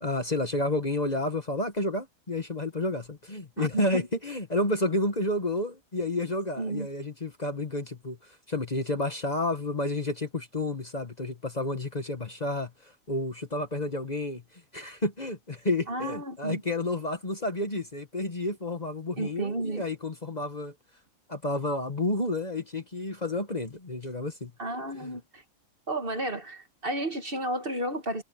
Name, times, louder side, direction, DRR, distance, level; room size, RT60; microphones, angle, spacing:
voice 1, 0.0-14.4 14.7-20.7 21.3-24.5, left 2 dB, 30° left, 1.5 m, -30 dB
voice 2, 3.6-4.0 6.6-6.9 15.9-16.6 19.2-19.9 24.6-25.4 25.9-28.2, right 1 dB, 40° right, 1.8 m, -32 dB
omnidirectional pair, 1.5 m